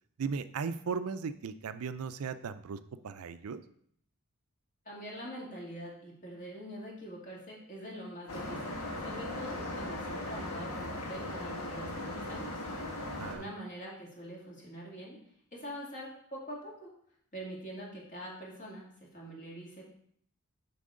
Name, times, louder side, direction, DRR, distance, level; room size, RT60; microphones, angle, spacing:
voice 1, 0.2-2.8 3.0-3.6 13.0-13.5, right 5 dB, 75° right, 12 dB, 0.4 m, -37 dB
voice 2, 4.9-12.6 13.3-15.2 15.5-16.9 17.3-19.8, equal, 35° left, -3 dB, 2.3 m, -44 dB
sound 1, 8.3-13.4, left 1 dB, 85° left, 1.4 m, -38 dB
7.6 x 5.9 x 3.7 m, 0.66 s
head